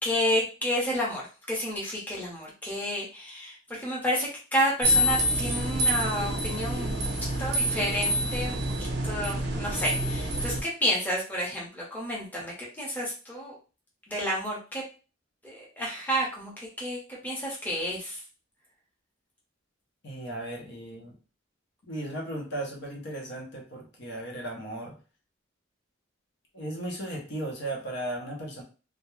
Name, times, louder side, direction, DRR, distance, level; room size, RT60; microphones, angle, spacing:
voice 1, 0.0-6.9 7.4-13.5 14.1-14.8 15.4-18.2, equal, 10° left, -4 dB, 0.7 m, -30 dB
sound 1, 4.8-10.6, equal, 55° right, 0.6 m, -27 dB
voice 2, 20.0-21.2 21.8-24.9 26.5-28.6, right 1 dB, 55° left, 0 dB, 0.7 m, -36 dB
2.3 x 2.0 x 3.0 m, 0.34 s
head